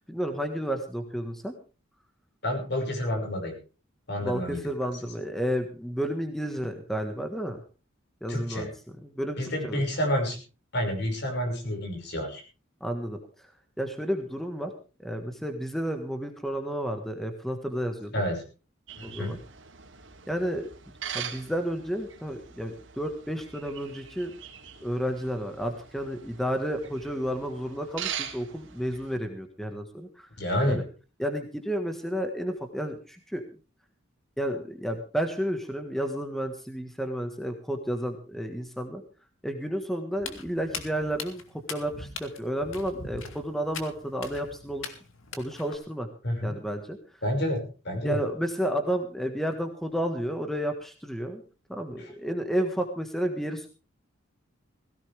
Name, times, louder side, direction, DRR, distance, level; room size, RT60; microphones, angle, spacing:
voice 1, 0.1-1.5 4.2-7.6 8.2-8.7 9.0-9.4 9.6-9.8 12.8-13.5 13.8-14.7 15.0-18.2 19.0-19.4 20.3-24.3 24.8-30.3 30.7-30.8 31.2-33.4 34.4-39.0 39.4-41.4 41.7-44.9 45.4-46.1 46.4-47.0 48.0-51.4 51.7-53.7, equal, ahead, 6 dB, 1.5 m, -31 dB
voice 2, 2.4-3.5 4.1-4.6 8.3-8.7 9.4-10.4 10.7-12.4 18.1-18.4 19.0-19.3 30.4-30.8 46.2-46.5 47.2-48.2 52.0-52.1, equal, 55° left, 3 dB, 5.7 m, -29 dB
sound 1, 18.9-29.2, right 8 dB, 70° right, 3.0 m, -42 dB
Walk footsteps, 40.2-45.8, left 5 dB, 85° left, 2.4 m, -41 dB
17.5 x 16.5 x 3.5 m, 0.35 s
head